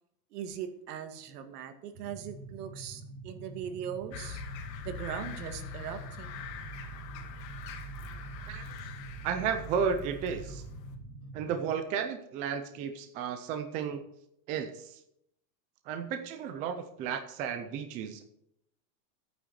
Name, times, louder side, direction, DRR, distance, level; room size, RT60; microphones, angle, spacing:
voice 1, 0.3-4.4 4.8-6.4 11.2-11.3, right 9 dB, 65° right, 7 dB, 2.1 m, -40 dB
sound 1, 1.9-11.7, right 2 dB, 40° right, 4.0 m, -46 dB
sound 2, 4.1-11.0, left 3 dB, 80° left, 2.4 m, -43 dB
voice 2, 9.2-10.6 11.3-14.0 14.5-15.0 15.9-18.2, right 7 dB, 15° right, 7 dB, 0.4 m, -33 dB
11.5 x 9.2 x 6.5 m, 0.77 s
supercardioid pair, 165°, 49 cm